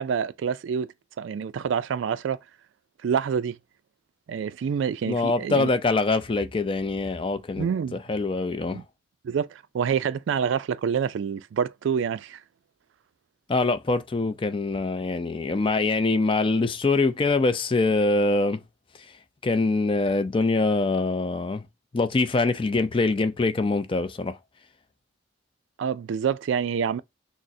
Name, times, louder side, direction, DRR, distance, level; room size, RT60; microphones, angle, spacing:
voice 1, 0.0-2.4 3.0-3.6 4.3-5.7 7.6-8.0 8.7-8.8 9.2-12.4 25.8-27.0, right 7 dB, 70° right, 0.3 m, -27 dB
voice 2, 5.1-7.7 8.1-8.8 13.5-18.6 19.4-21.6 21.9-24.4, left 3 dB, 25° left, 0.4 m, -24 dB
6.1 x 2.1 x 2.6 m
head